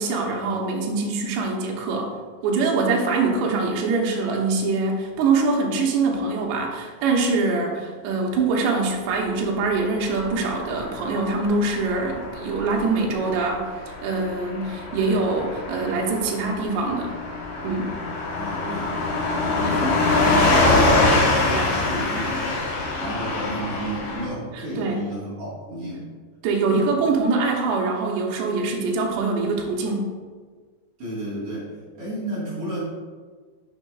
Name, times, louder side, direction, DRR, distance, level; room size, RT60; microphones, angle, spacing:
voice 1, 0.0-2.2 2.4-17.1 17.6-18.0 19.6-19.8 21.5-21.7 24.5-25.1 26.4-30.1, right 3 dB, 80° right, 0 dB, 3.0 m, -24 dB
Car passing by / Truck, 9.9-24.3, left 2 dB, 90° left, 4.0 m, -24 dB
voice 2, 18.4-18.9 19.4-22.6 23.0-26.1 26.6-26.9 31.0-32.8, right 1 dB, 45° right, -8 dB, 2.0 m, -32 dB
9.4 x 6.3 x 2.4 m, 1.5 s
omnidirectional pair, 5.0 m